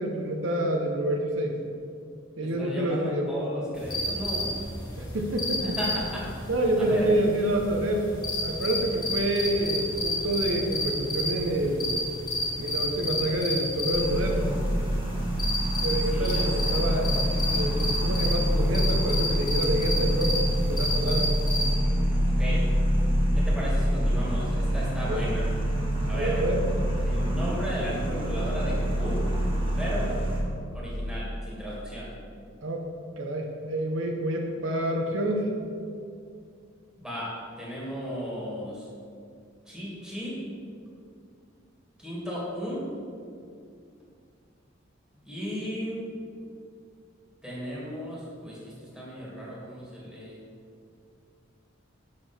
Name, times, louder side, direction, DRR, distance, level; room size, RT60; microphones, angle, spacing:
voice 1, 0.0-1.5 2.4-3.3 5.1-5.8 6.5-8.1 8.4-11.9 12.5-14.4 15.8-20.4 20.7-21.3 25.1-25.3 26.0-26.6 32.6-32.9 33.2-35.5, right 1 dB, 75° right, 2 dB, 0.9 m, -28 dB
voice 2, 2.4-4.5 5.6-6.3 6.8-7.1 16.1-16.8 22.4-22.6 23.3-25.5 26.1-26.5 26.8-29.2 29.8-30.2 30.7-32.1 37.0-38.8 39.7-40.4 42.0-42.8 45.3-46.1 47.4-48.6 48.9-50.4, equal, 5° right, -7 dB, 2.2 m, -35 dB
sound 1, 3.8-21.7, left 1 dB, 25° left, 1.6 m, -31 dB
sound 2, 13.9-30.4, equal, 25° right, 1.6 m, -26 dB
7.5 x 6.9 x 4.4 m, 2.4 s
head